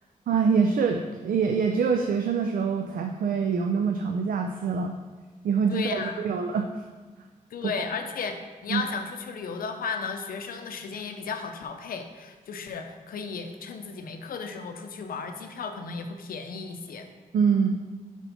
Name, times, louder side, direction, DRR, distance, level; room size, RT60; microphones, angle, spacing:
voice 1, 0.3-5.0 5.4-6.8 7.6-7.7 8.7-8.8 17.3-17.8, right 5 dB, 80° right, 4 dB, 0.4 m, -25 dB
voice 2, 5.7-6.3 7.5-8.3 8.6-17.1, left 5 dB, 90° left, 6 dB, 0.6 m, -34 dB
4.4 x 4.1 x 5.6 m, 1.3 s
cardioid pair, 60°, 14 cm